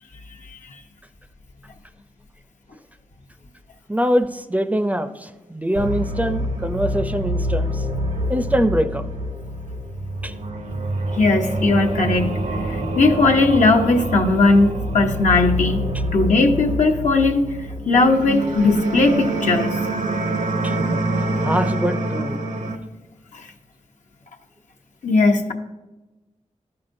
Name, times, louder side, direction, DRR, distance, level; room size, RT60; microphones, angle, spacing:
voice 1, 3.9-7.8 8.3-9.1 10.2-10.3 20.6-22.4, equal, 10° right, 9 dB, 0.5 m, -23 dB
sound 1, 5.7-22.7, right 1 dB, 75° right, 0.9 m, -26 dB
voice 2, 11.2-12.3 13.0-17.4 17.9-19.7 23.3-23.4 25.0-25.5, left 3 dB, 75° left, 2 dB, 0.9 m, -18 dB
13.0 x 5.8 x 2.6 m, 1.1 s
cardioid pair, 45°, 13 cm